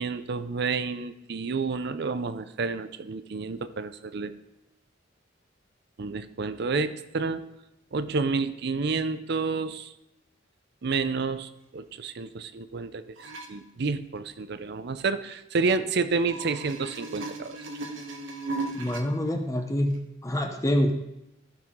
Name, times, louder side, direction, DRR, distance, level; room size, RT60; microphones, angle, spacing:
voice 1, 0.0-4.3 6.0-7.5 7.9-9.9 10.8-17.6, right 4 dB, 55° right, 12 dB, 0.6 m, -30 dB
sound 1, 13.2-13.5 16.1-19.0 19.9-20.0, right 2 dB, 80° right, 1.2 m, -36 dB
voice 2, 18.7-20.9, equal, 15° left, 4 dB, 0.7 m, -26 dB
14.5 x 5.7 x 3.7 m, 0.89 s
head